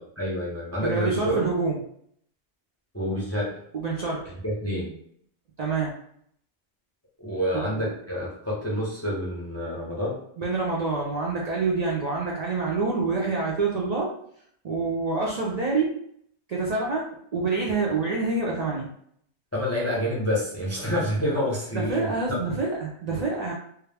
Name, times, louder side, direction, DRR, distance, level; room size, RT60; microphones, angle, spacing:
voice 1, 0.0-1.5 2.9-3.5 4.4-4.9 7.2-10.2 19.5-22.4, equal, 20° left, -5 dB, 0.4 m, -28 dB
voice 2, 0.8-1.8 3.7-4.3 5.6-5.9 7.5-7.9 10.4-14.1 14.6-16.0 16.5-18.9 21.7-23.5, right 3 dB, 60° right, -3 dB, 0.4 m, -27 dB
2.2 x 2.0 x 3.2 m, 0.66 s
omnidirectional pair, 1.2 m